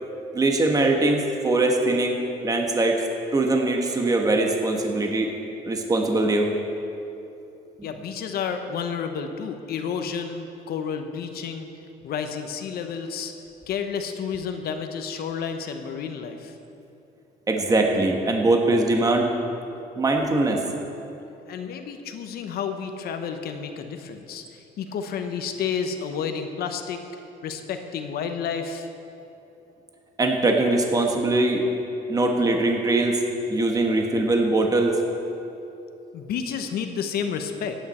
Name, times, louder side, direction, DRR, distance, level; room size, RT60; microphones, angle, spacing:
voice 1, 0.3-3.0 3.3-5.3 5.6-6.5 7.8-7.9 17.5-19.3 20.0-20.6 30.2-31.6 32.1-33.2 33.5-34.9, right 2 dB, 20° right, 2 dB, 1.3 m, -22 dB
voice 2, 7.8-11.7 12.0-13.3 13.7-16.5 21.5-27.0 27.4-28.9 36.1-37.8, left 6 dB, 65° left, 6 dB, 1.0 m, -31 dB
16.5 x 9.4 x 4.3 m, 2.8 s
cardioid pair, 110°, 17 cm